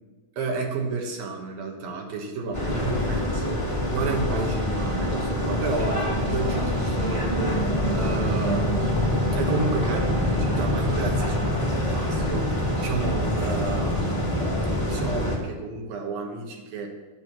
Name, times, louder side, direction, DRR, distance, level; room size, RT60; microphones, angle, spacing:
voice 1, 0.4-16.9, right 3 dB, 65° right, 1 dB, 3.0 m, -32 dB
sound 1, 2.5-15.4, left 1 dB, 10° left, 1.6 m, -25 dB
11.0 x 8.0 x 6.1 m, 1.2 s
omnidirectional pair, 4.7 m